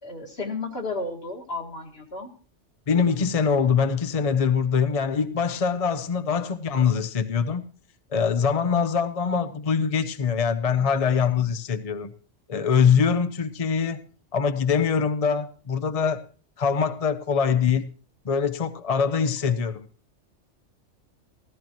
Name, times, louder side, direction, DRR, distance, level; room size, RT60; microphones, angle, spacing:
voice 1, 0.0-2.3 19.4-19.6, left 3 dB, 55° left, 2.2 m, -33 dB
voice 2, 2.9-7.7 8.1-12.1 12.5-14.0 14.3-16.2 16.6-17.9 18.2-19.9, left 6 dB, 40° left, 0.6 m, -23 dB
15.0 x 14.0 x 3.0 m
omnidirectional pair, 1.2 m